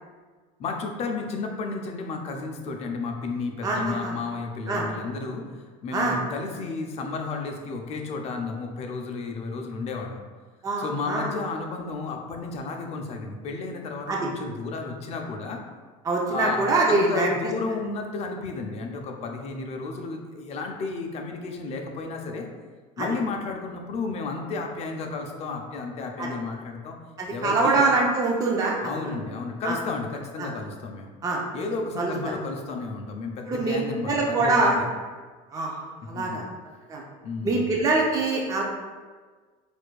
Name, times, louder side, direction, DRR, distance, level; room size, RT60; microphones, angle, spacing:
voice 1, 0.6-10.2 10.8-15.6 16.3-22.5 23.0-26.9 27.3-27.9 28.8-31.1 31.5-34.9 36.0-36.4 37.2-37.7, left 4 dB, 40° left, 2 dB, 0.5 m, -32 dB
voice 2, 3.6-4.1 4.7-4.9 5.9-6.2 10.6-11.3 14.1-14.2 16.0-17.3 23.0-23.1 26.2-26.3 27.2-29.1 29.6-29.8 30.4-30.5 31.2-31.4 32.0-32.1 33.5-33.8 34.0-34.8 35.5-35.7 36.1-36.4 36.9-37.0 37.4-38.6, right 3 dB, 20° right, -2 dB, 0.5 m, -24 dB
4.3 x 2.5 x 2.2 m, 1.4 s
cardioid pair, 125°, 16 cm